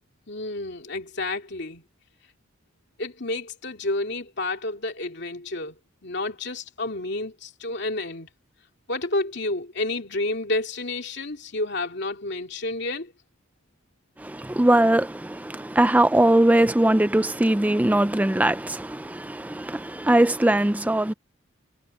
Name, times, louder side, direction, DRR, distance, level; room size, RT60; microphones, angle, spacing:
voice 1, 0.3-1.8 3.0-5.8 6.0-8.3 8.9-13.1, left 2 dB, 60° left, 2.7 m, -30 dB
voice 2, 14.2-21.1, right 1 dB, 10° right, 0.4 m, -21 dB
head